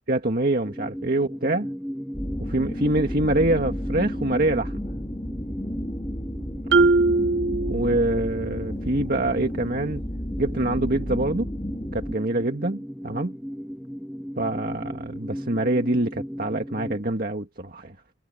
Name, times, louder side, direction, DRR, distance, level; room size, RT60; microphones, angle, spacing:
voice 1, 0.1-1.7 2.4-4.9 6.7-6.9 7.7-10.0 10.4-11.5 11.9-13.4 14.4-18.0, right 2 dB, 55° right, 1.9 m, -25 dB
sound 1, 0.6-17.0, equal, ahead, 1.5 m, -37 dB
sound 2, 2.1-12.1, equal, 30° left, 2.9 m, -32 dB
Marimba xylophone, 6.7-8.5, right 3 dB, 85° right, 1.2 m, -21 dB
head